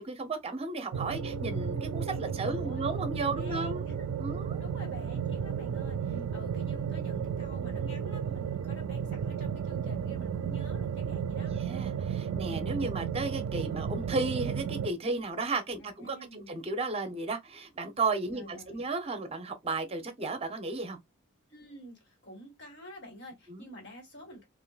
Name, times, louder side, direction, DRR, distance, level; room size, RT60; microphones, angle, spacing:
voice 1, 0.0-3.8 4.2-4.6 6.0-6.3 11.4-21.0 23.5-23.7, right 3 dB, 30° right, 0.6 m, -34 dB
sound 1, 0.9-14.9, right 7 dB, 65° right, 0.3 m, -33 dB
sound 2, 1.1-8.9, left 6 dB, 5° right, 1.0 m, -52 dB
voice 2, 2.3-3.0 3.4-4.0 4.3-11.7 15.8-16.5 18.3-18.8 21.5-24.4, equal, 55° left, 1.7 m, -49 dB
3.6 x 2.5 x 2.3 m
head